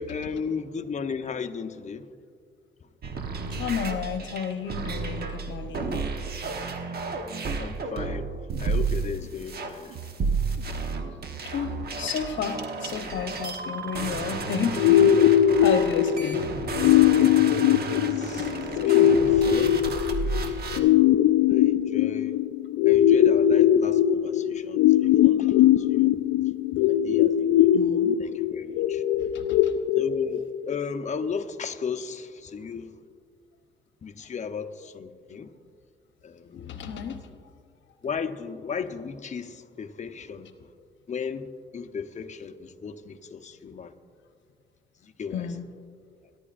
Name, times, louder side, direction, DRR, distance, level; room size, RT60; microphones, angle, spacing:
voice 1, 0.0-2.1 2.8-2.9 7.6-10.0 17.5-20.0 20.4-21.0 21.5-22.4 22.9-26.2 26.9-27.8 28.2-29.0 30.0-33.0 34.0-35.5 36.2-36.9 37.3-37.4 38.0-40.7 41.1-43.9 45.0-45.6, left 5 dB, 35° left, 7 dB, 0.8 m, -35 dB
sound 1, 3.0-20.8, right 4 dB, 50° right, 1.2 m, -32 dB
voice 2, 3.6-6.0 11.4-16.4 27.7-28.2 29.3-29.7 36.5-37.3 45.3-45.6, left 7 dB, 70° left, 7 dB, 0.9 m, -32 dB
sound 2, 14.8-30.8, left 11 dB, 85° left, 0.4 m, -21 dB
22.0 x 11.0 x 2.5 m, 2.1 s
cardioid pair, 90°, 20 cm